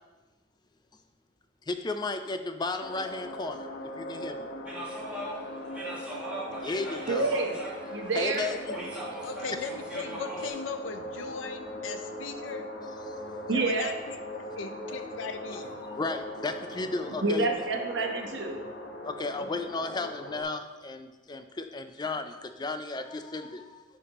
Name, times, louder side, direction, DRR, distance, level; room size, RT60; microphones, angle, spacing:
voice 1, 1.7-3.7 4.0-4.5 6.6-7.3 8.1-8.7 14.9-15.0 15.5-17.5 19.0-23.8, left 3 dB, 20° left, 8 dB, 0.4 m, -34 dB
sound 1, 2.8-20.4, left 1 dB, 65° left, 1.0 m, -40 dB
sound 2, 4.6-10.5, right 1 dB, 5° right, 1.5 m, -41 dB
voice 2, 7.1-7.6 7.9-8.5 13.5-13.9 17.2-18.6, right 3 dB, 65° right, 2 dB, 1.0 m, -28 dB
voice 3, 8.3-8.8 9.2-12.7 13.5-15.8 19.4-19.5, left 5 dB, 90° left, 8 dB, 0.6 m, -38 dB
11.0 x 5.1 x 2.9 m, 1.2 s
head